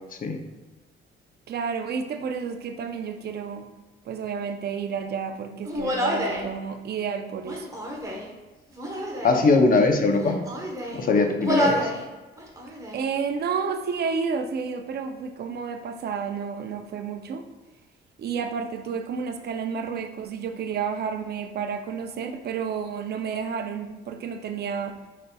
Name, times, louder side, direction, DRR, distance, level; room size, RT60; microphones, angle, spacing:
voice 1, 1.5-3.7 4.1-7.7 12.9-17.4 18.2-25.0, right 6 dB, 55° right, 7 dB, 0.5 m, -31 dB
Human voice, 5.7-6.5 7.4-8.3 8.7-9.4 10.1-11.0 11.4-12.0 12.4-13.0, equal, 15° right, 1.0 m, -28 dB
voice 2, 9.2-10.4 10.9-11.9, left 3 dB, 45° left, 5 dB, 0.7 m, -20 dB
5.1 x 4.0 x 2.3 m, 1.2 s
cardioid pair, 90°, 20 cm